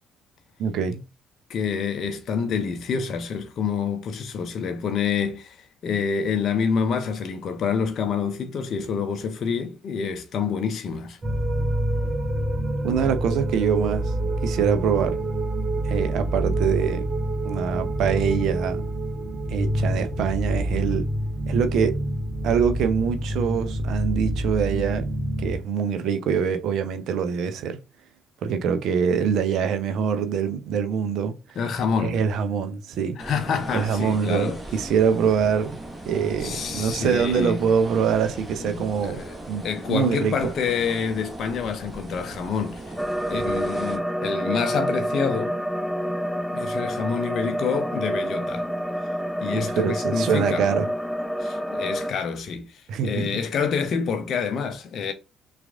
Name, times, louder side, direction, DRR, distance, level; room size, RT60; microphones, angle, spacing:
voice 1, 0.6-1.0 12.8-14.1 14.4-15.2 15.8-17.1 17.4-18.8 19.5-21.1 21.5-22.0 22.4-25.1 25.4-27.8 28.4-31.4 32.0-33.2 33.7-39.2 39.5-40.5 49.5-50.9 52.9-53.4, right 7 dB, 55° right, 0.5 m, -24 dB
voice 2, 1.5-11.2 31.6-32.2 33.2-34.6 36.4-37.6 38.6-39.4 39.6-42.9 43.3-45.6 46.5-48.7 49.4-50.7 51.4-55.1, left 6 dB, 50° left, 0.5 m, -27 dB
sound 1, 11.2-25.6, right 1 dB, 30° right, 0.9 m, -27 dB
sound 2, 33.2-44.0, right 1 dB, 15° right, 1.5 m, -38 dB
sound 3, 43.0-52.1, equal, 5° left, 0.5 m, -28 dB
5.8 x 2.4 x 2.4 m
figure-of-eight pair, 45°, 0 cm